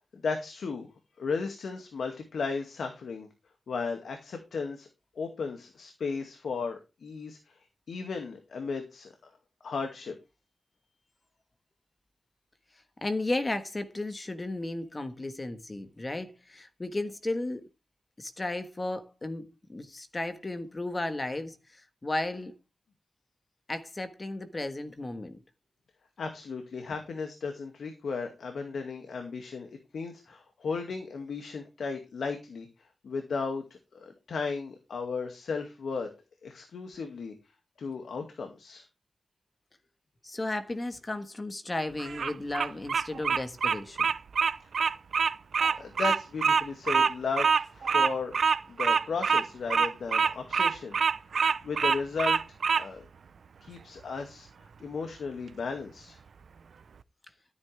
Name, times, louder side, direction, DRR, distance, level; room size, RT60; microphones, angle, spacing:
voice 1, 0.1-0.9 1.2-3.3 3.7-4.9 5.2-7.6 7.9-9.3 9.6-10.1 26.2-32.7 33.0-33.6 33.9-36.1 36.4-37.3 37.8-38.8 45.8-48.4 48.7-51.0 51.6-52.4 52.8-53.1 53.6-56.2, left 4 dB, 80° left, 2.2 m, -35 dB
voice 2, 13.0-17.6 18.2-22.6 23.7-25.4 40.2-44.1, left 2 dB, 25° left, 1.4 m, -34 dB
Bird vocalization bird call bird song, 42.0-52.8, right 6 dB, 70° right, 0.6 m, -25 dB
13.5 x 9.5 x 3.4 m
wide cardioid pair, 125°, 0 cm